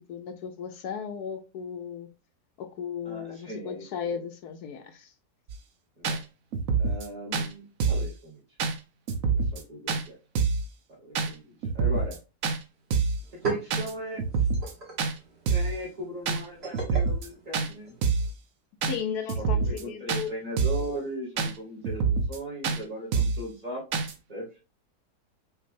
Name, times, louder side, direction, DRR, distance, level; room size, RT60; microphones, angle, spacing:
voice 1, 0.1-2.1 2.6-5.1 18.8-20.3, left 7 dB, 75° left, 6 dB, 1.2 m, -35 dB
voice 2, 3.0-4.2 6.0-6.2 6.8-8.4 9.2-10.2 10.9-12.2 13.5-14.2 15.5-17.9 19.4-23.8 24.3-24.5, right 1 dB, 25° right, -3 dB, 2.2 m, -38 dB
sound 1, 5.5-5.6 6.0-6.2 6.5-7.1 7.3-7.5 7.8-8.1 8.6-8.7 9.1-9.6 9.9-10.0 10.3-10.7 11.1-11.3 11.6-12.2 12.4-12.6 12.9-13.2 13.7-13.9 14.2-14.7 15.0-15.1 15.5-15.8 16.3-16.4 16.7-17.3 17.5-17.7 18.0-18.3 18.8-19.0 19.3-19.8 20.1-20.2 20.6-20.9 21.4-21.5 21.8-22.4 22.6-22.8 23.1-23.4 23.9-24.1, right 5 dB, 65° right, 1.0 m, -26 dB
sound 2, 12.7-12.8 13.1-18.3, right 4 dB, 40° right, 1.8 m, -38 dB
5.9 x 2.6 x 2.6 m, 0.30 s
omnidirectional pair, 1.7 m